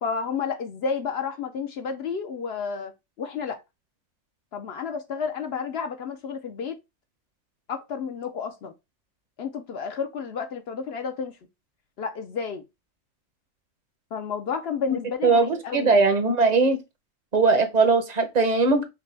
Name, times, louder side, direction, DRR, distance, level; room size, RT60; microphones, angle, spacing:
voice 1, 0.0-2.9 3.2-3.6 4.5-6.8 7.7-8.7 9.4-11.4 12.0-12.6 14.1-16.0, left 6 dB, 60° left, 0.8 m, -31 dB
voice 2, 14.9-16.8 17.3-18.8, right 3 dB, 40° right, 0.7 m, -20 dB
5.8 x 2.2 x 3.2 m
omnidirectional pair, 1.3 m